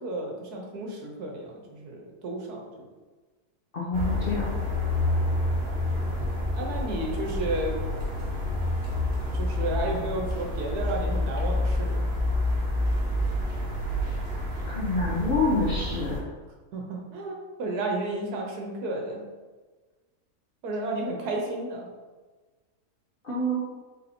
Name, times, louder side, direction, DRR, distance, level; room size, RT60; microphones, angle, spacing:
voice 1, 0.0-2.8 5.9-6.3 6.5-7.8 9.3-12.1 16.7-19.2 20.6-21.9, right 2 dB, 80° right, 0 dB, 1.3 m, -32 dB
voice 2, 3.7-4.5 14.7-16.2 23.2-23.6, left 2 dB, 45° left, -4 dB, 0.8 m, -27 dB
sound 1, 3.9-16.2, left 1 dB, 45° right, 1.3 m, -28 dB
3.8 x 2.7 x 4.1 m, 1.3 s
omnidirectional pair, 1.6 m